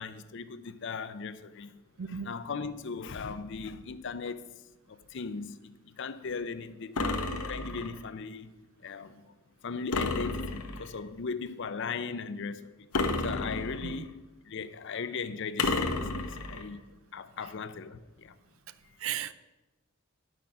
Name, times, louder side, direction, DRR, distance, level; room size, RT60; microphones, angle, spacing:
voice 1, 0.0-1.7 2.1-4.5 4.9-8.5 8.8-9.3 9.6-12.9 13.2-15.8 16.4-16.8 17.1-18.3, left 5 dB, 55° left, 0.5 m, -38 dB
voice 2, 2.0-2.3 13.8-14.1 19.0-19.3, right 9 dB, 70° right, 0.4 m, -35 dB
sound 1, 7.0-8.0 9.9-11.0 12.9-14.1 15.6-16.7, left 3 dB, 80° left, 0.9 m, -31 dB
10.0 x 6.2 x 6.0 m
head